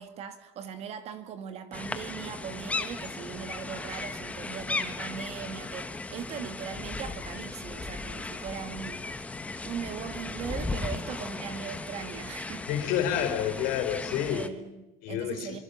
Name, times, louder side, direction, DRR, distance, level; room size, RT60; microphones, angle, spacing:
voice 1, 0.0-9.1 9.6-12.7 14.3-15.6, right 8 dB, 35° right, 2.1 m, -39 dB
sound 1, 1.7-14.5, left 3 dB, 10° left, 1.2 m, -36 dB
voice 2, 12.7-14.5 15.0-15.6, left 10 dB, 55° left, 4.8 m, -29 dB
25.0 x 24.5 x 7.2 m
cardioid pair, 165°, 17 cm